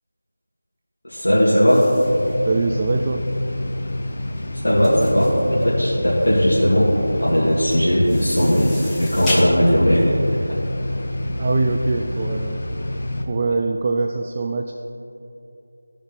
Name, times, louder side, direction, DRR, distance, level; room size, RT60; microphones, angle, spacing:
voice 1, 1.0-1.9 4.6-10.4, equal, 70° left, -10 dB, 2.2 m, -18 dB
sound 1, 1.7-11.3, left 1 dB, 10° left, 0.8 m, -35 dB
sound 2, 2.0-13.2, left 1 dB, 40° left, 0.9 m, -28 dB
voice 2, 2.5-3.3 11.4-12.6 13.3-14.7, right 3 dB, 25° right, 3 dB, 0.3 m, -23 dB
14.5 x 5.2 x 4.0 m, 2.9 s
figure-of-eight pair, 170°, 0 cm